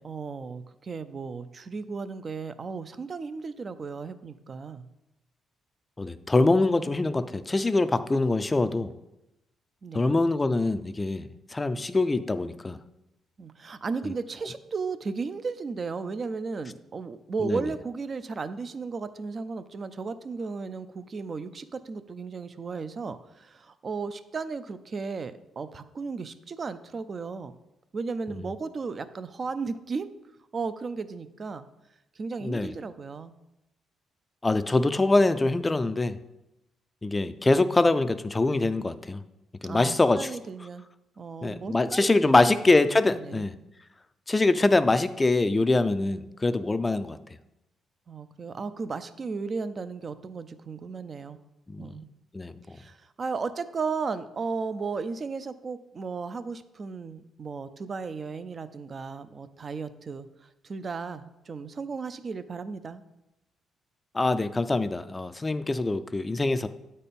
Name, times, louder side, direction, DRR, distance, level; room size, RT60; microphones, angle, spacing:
voice 1, 0.0-4.9 9.8-10.1 13.4-27.5 27.9-30.1 30.5-31.7 32.2-33.3 39.6-40.8 41.2-42.6 43.1-43.4 48.1-51.4 51.8-52.1 52.7-60.3 60.6-63.0, right 4 dB, 40° right, 13 dB, 0.5 m, -35 dB
voice 2, 6.0-8.9 9.9-12.8 14.0-14.1 17.4-17.7 28.3-28.5 32.4-32.7 34.4-36.2 37.0-39.2 39.6-40.3 41.4-43.5 44.3-47.2 51.7-51.9 52.3-52.8 64.1-66.7, left 2 dB, 20° left, 12 dB, 0.4 m, -24 dB
8.3 x 4.3 x 5.3 m, 0.93 s
cardioid pair, 90°, 0 cm